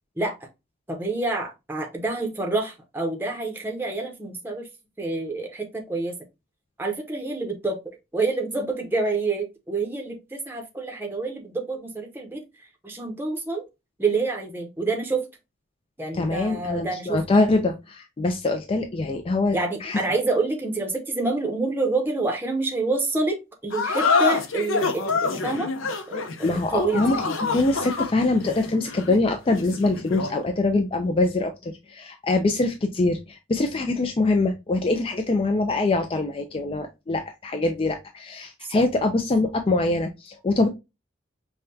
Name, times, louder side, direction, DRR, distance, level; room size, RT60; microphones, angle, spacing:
voice 1, 0.9-4.7 5.0-6.2 6.8-7.8 8.1-12.4 12.8-13.6 14.0-15.3 16.0-17.2 19.5-27.0 38.6-38.8, right 3 dB, 10° right, 2 dB, 0.7 m, -27 dB
voice 2, 16.1-20.0 26.4-40.7, left 2 dB, 25° left, 5 dB, 0.4 m, -24 dB
sound 1, 23.7-30.4, left 4 dB, 70° left, 0.7 m, -26 dB
5.5 x 2.2 x 2.6 m, 0.24 s
head